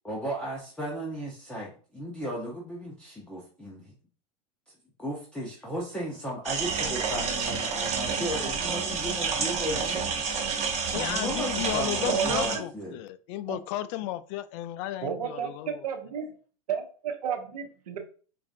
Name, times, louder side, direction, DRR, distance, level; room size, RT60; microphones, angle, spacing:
voice 1, 0.0-3.9 5.0-10.2 10.8-13.0, right 1 dB, 5° left, -3 dB, 0.8 m, -35 dB
sound 1, 6.4-12.6, right 5 dB, 35° right, 0.9 m, -29 dB
voice 2, 10.9-15.8, left 14 dB, 50° left, 14 dB, 0.4 m, -34 dB
voice 3, 12.1-12.6 13.5-13.6 15.0-16.3 16.7-18.0, right 7 dB, 85° right, 5 dB, 0.8 m, -32 dB
4.8 x 2.5 x 2.6 m, 0.41 s
hypercardioid pair, 110°, 19 cm